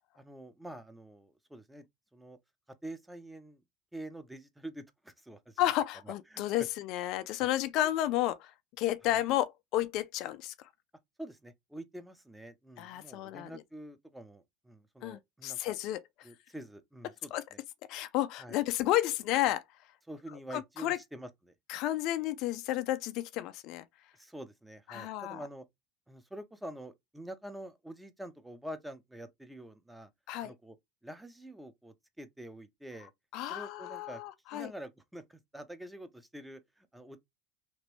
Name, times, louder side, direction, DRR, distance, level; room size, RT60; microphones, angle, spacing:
voice 1, 0.1-1.8 2.1-2.4 2.8-3.6 3.9-5.6 6.0-6.7 7.4-7.5 11.2-15.7 16.2-17.6 18.4-18.6 20.1-21.5 24.1-25.6 26.1-30.1 30.4-30.8 31.0-33.1 33.5-34.2 34.5-37.2, right 1 dB, 5° right, 0.6 m, -46 dB
voice 2, 5.6-10.5 12.8-13.6 15.0-16.0 17.3-17.4 17.9-19.6 20.5-21.0 21.7-23.8 24.9-25.4 30.3-30.5 33.3-34.7, left 14 dB, 60° left, 0.4 m, -32 dB
3.0 x 2.6 x 3.0 m
hypercardioid pair, 90°, 0 cm